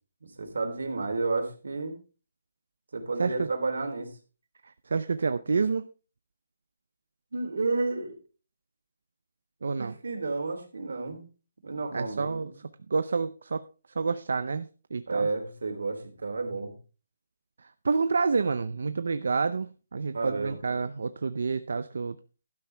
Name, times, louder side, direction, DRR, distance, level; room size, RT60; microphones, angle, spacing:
voice 1, 0.2-2.0 2.9-4.1 7.3-8.2 9.8-11.2 11.6-12.5 15.1-16.7 20.1-20.6, right 3 dB, 80° right, 3.2 m, -31 dB
voice 2, 4.6-5.9 9.6-9.9 11.9-12.5 12.9-13.6 13.9-15.3 17.6-22.2, right 4 dB, 60° right, 0.6 m, -29 dB
12.0 x 10.5 x 3.4 m
hypercardioid pair, 180°, 0 cm